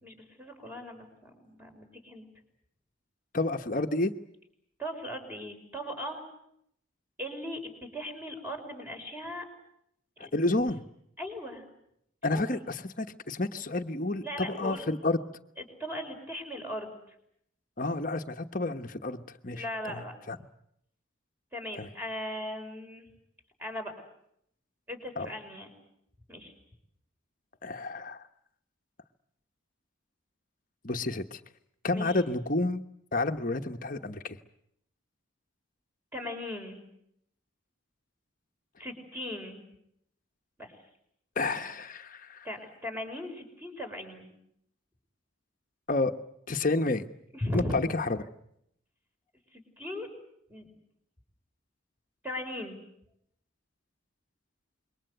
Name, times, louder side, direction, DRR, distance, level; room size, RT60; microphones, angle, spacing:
voice 1, 0.0-2.2 4.8-6.2 7.2-9.5 10.2-10.3 11.2-11.6 12.3-12.6 14.2-14.8 15.6-17.2 19.5-20.1 21.5-23.1 23.6-23.9 24.9-25.7 26.3-26.5 31.9-32.2 36.1-36.8 38.8-39.6 40.6-40.8 42.4-44.3 47.3-47.8 49.5-50.1 50.5-50.7 52.2-52.8, left 1 dB, 10° right, 4 dB, 5.4 m, -38 dB
voice 2, 3.3-4.1 10.3-10.8 12.2-15.2 17.8-20.4 21.8-21.9 25.2-25.3 27.6-28.2 30.8-31.4 31.8-32.8 33.1-34.4 41.4-42.5 45.9-46.1 46.5-47.0 47.5-48.2, left 2 dB, 40° left, 7 dB, 1.2 m, -30 dB
27.5 x 23.0 x 8.1 m, 0.74 s
head